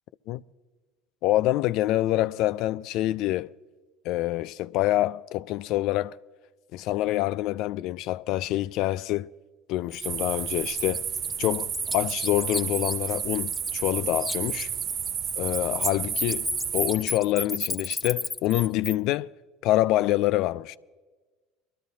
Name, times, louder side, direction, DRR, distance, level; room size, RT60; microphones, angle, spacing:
voice 1, 1.2-3.5 4.0-6.2 6.7-9.3 9.7-11.1 11.4-14.7 15.4-16.5 16.7-19.3 19.6-20.8, left 15 dB, 60° left, 0.3 m, -26 dB
Bird, 9.9-10.0 10.5-13.9 14.2-18.9, left 2 dB, 10° left, 1.2 m, -33 dB
sound 1, 10.0-17.0, right 8 dB, 45° right, 0.5 m, -31 dB
23.0 x 13.0 x 2.7 m
hypercardioid pair, 65°, 0 cm